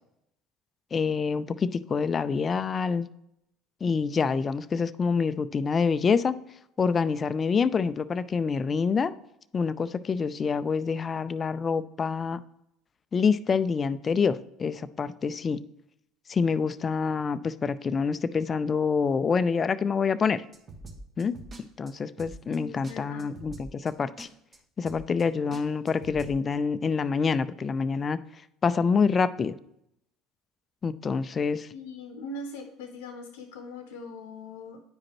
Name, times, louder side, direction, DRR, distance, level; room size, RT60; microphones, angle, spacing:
voice 1, 0.9-3.1 3.8-6.4 6.8-9.1 9.5-12.4 13.1-15.6 16.3-20.4 21.2-21.3 21.8-24.3 24.8-28.2 28.6-29.5 30.8-31.7, left 5 dB, 35° left, 14 dB, 0.4 m, -26 dB
sound 1, 20.5-21.6 21.9-22.0 22.2-22.6 22.8-22.9 23.2-23.9 24.2-24.3 24.5-24.6 24.8-25.2 25.5-26.3, right 2 dB, 35° right, 1.4 m, -44 dB
voice 2, 22.5-23.3 31.7-34.8, left 2 dB, 75° left, 5 dB, 0.8 m, -41 dB
9.5 x 4.9 x 3.0 m, 0.78 s
hypercardioid pair, 70°, 0 cm